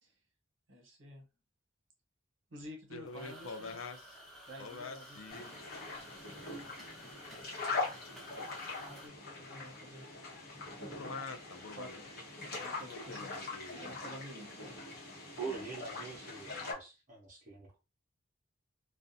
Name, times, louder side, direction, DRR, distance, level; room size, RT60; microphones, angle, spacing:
voice 1, 0.7-1.2 2.5-3.8 4.5-5.2 8.9-9.2 9.5-10.1 11.8-11.9 12.6-13.3 13.7-14.9, equal, 65° right, 0.9 m, -50 dB
voice 2, 2.9-4.1 4.6-5.5 11.0-12.1 12.9-13.9, left 4 dB, 80° left, 0.5 m, -45 dB
sound 1, 3.0-9.1, equal, ahead, 0.8 m, -53 dB
sound 2, 5.3-16.7, left 3 dB, 50° left, 0.9 m, -42 dB
voice 3, 15.4-17.8, right 5 dB, 40° right, 0.7 m, -44 dB
2.4 x 2.2 x 2.6 m
head